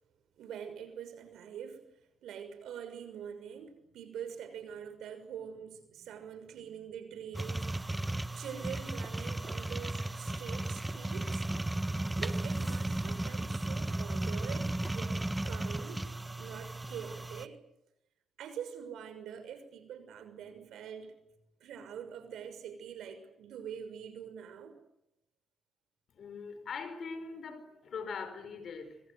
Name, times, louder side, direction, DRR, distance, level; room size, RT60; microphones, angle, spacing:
voice 1, 0.4-1.9 2.2-8.0 8.3-11.4 12.2-16.1 16.4-17.6 18.4-21.1 21.6-24.8, right 8 dB, 75° right, 9 dB, 6.3 m, -45 dB
sound 1, 7.3-17.5, right 2 dB, 10° right, 1.2 m, -35 dB
voice 2, 26.1-29.0, left 5 dB, 55° left, 11 dB, 5.3 m, -41 dB
26.0 x 25.5 x 8.2 m, 0.89 s
cardioid pair, 90°, 0 cm